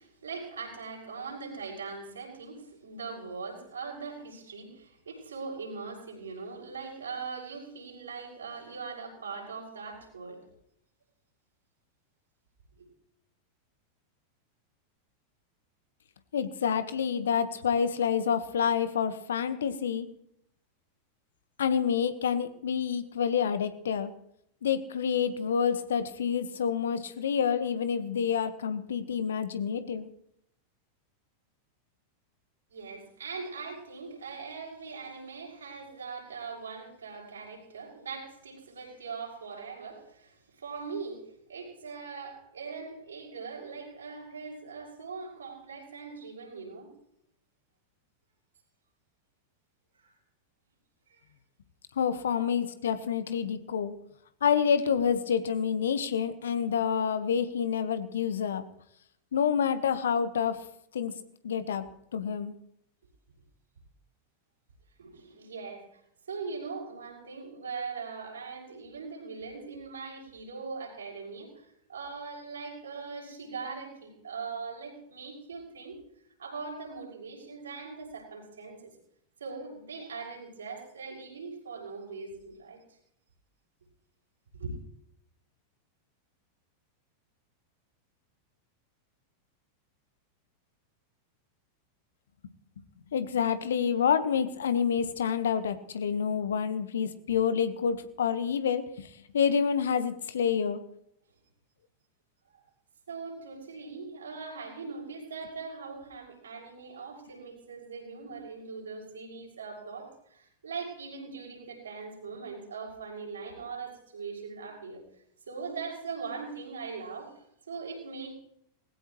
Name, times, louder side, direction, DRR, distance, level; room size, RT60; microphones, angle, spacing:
voice 1, 0.0-10.4 12.8-12.9 32.7-46.9 49.9-50.1 51.1-51.2 52.4-52.5 65.0-66.0 66.3-76.0 76.4-78.9 79.4-82.8 84.5-84.7 102.5-102.6 103.1-115.0 115.5-118.3, right 4 dB, 70° right, -1 dB, 6.6 m, -41 dB
voice 2, 16.3-20.1 21.6-24.1 24.6-30.1 52.0-53.9 54.4-58.6 59.3-60.6 60.9-61.1 61.4-62.5 93.1-99.1 99.3-100.8, left 7 dB, 65° left, 12 dB, 1.4 m, -28 dB
20.5 x 16.5 x 3.2 m, 0.72 s
figure-of-eight pair, 90°, 0 cm